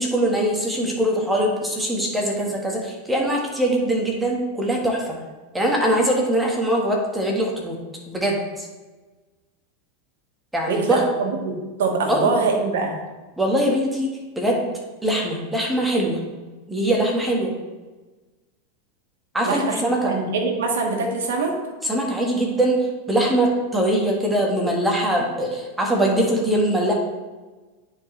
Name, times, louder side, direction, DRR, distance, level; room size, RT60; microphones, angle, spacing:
voice 1, 0.0-5.0 5.5-7.8 8.1-8.7 10.5-11.0 12.1-12.3 13.4-14.7 15.0-16.2 16.7-17.5 19.3-20.1 21.8-26.9, right 1 dB, 5° right, -1 dB, 1.5 m, -22 dB
voice 2, 10.7-12.9 19.4-21.5, right 4 dB, 85° right, 2 dB, 1.4 m, -24 dB
9.5 x 4.7 x 3.3 m, 1.2 s
supercardioid pair, 125°, 0 cm